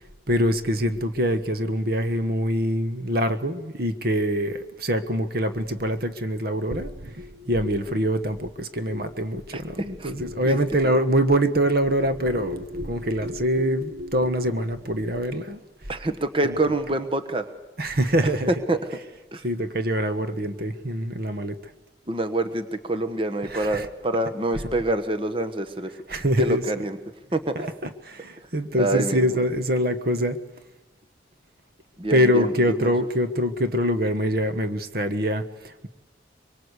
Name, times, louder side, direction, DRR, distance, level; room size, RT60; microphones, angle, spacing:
voice 1, 0.3-15.6 16.4-16.5 17.8-18.5 19.4-21.6 23.5-23.9 26.1-26.6 27.5-30.4 32.1-35.9, equal, 55° right, 10 dB, 1.3 m, -24 dB
voice 2, 9.5-10.1 10.5-10.6 15.9-17.4 18.7-18.8 19.3-19.4 22.1-27.0 27.3-27.7 28.7-29.4 32.0-32.9, right 2 dB, 30° right, 8 dB, 1.3 m, -27 dB
24.0 x 24.0 x 8.3 m, 1.1 s
head